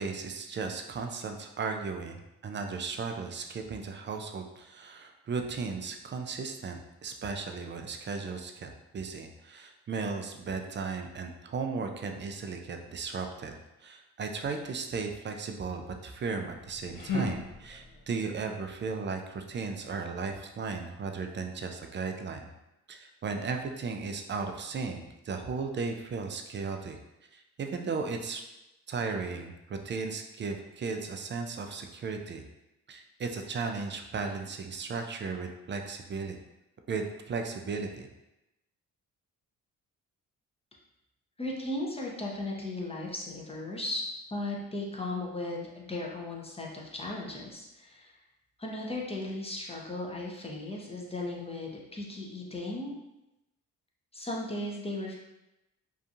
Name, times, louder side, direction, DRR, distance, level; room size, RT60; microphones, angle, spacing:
voice 1, 0.0-22.5 22.9-27.0 27.3-28.4 28.9-32.4 32.9-36.4 36.9-38.1, right 4 dB, 30° right, 4 dB, 0.4 m, -36 dB
sound 1, 16.4-18.1, left 2 dB, 65° left, 0.8 m, -36 dB
voice 2, 41.4-44.0 44.3-48.2 48.6-52.9 54.1-55.1, left 2 dB, 15° left, -2 dB, 0.7 m, -36 dB
2.7 x 2.3 x 2.6 m, 0.93 s
supercardioid pair, 60°, 36 cm